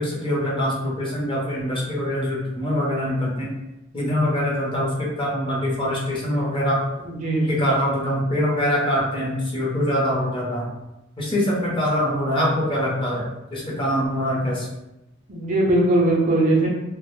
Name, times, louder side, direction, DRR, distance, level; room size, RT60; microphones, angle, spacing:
voice 1, 0.0-3.5 3.9-6.8 7.5-10.7 11.2-14.7, equal, 25° left, -5 dB, 0.6 m, -24 dB
voice 2, 7.1-7.6 15.3-16.7, right 1 dB, 40° right, -2 dB, 0.5 m, -20 dB
2.4 x 2.0 x 3.1 m, 0.95 s
head